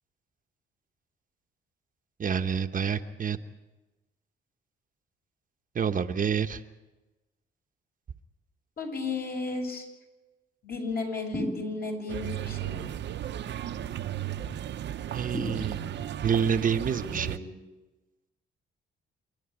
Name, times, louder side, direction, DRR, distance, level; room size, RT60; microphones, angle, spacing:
voice 1, 2.2-3.4 5.7-6.6 15.1-15.8 16.2-17.3, right 7 dB, 40° right, 7 dB, 1.0 m, -27 dB
voice 2, 8.8-9.8 10.6-12.7 16.9-17.4, left 3 dB, 50° left, 1 dB, 6.9 m, -34 dB
sound 1, 11.3-12.2 15.3-16.3, equal, 5° left, 1.9 m, -36 dB
sound 2, 12.1-17.4, right 11 dB, 65° right, 0.9 m, -35 dB
28.0 x 10.5 x 9.0 m, 1.1 s
cardioid pair, 90°, 20 cm